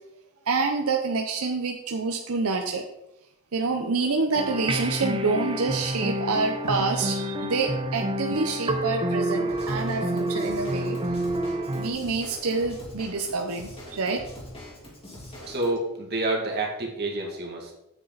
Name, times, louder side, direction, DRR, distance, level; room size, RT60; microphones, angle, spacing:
voice 1, 0.5-2.9 3.5-11.0 11.8-14.3 15.3-15.5, right 4 dB, 70° right, 4 dB, 0.8 m, -27 dB
sound 1, 4.3-11.9, right 1 dB, 25° right, 0.8 m, -28 dB
Drum kit / Drum, 9.5-15.7, left 1 dB, 25° left, 2.7 m, -43 dB
voice 2, 15.5-17.7, right 2 dB, 50° right, -1 dB, 2.3 m, -28 dB
8.5 x 8.2 x 4.1 m, 0.87 s
head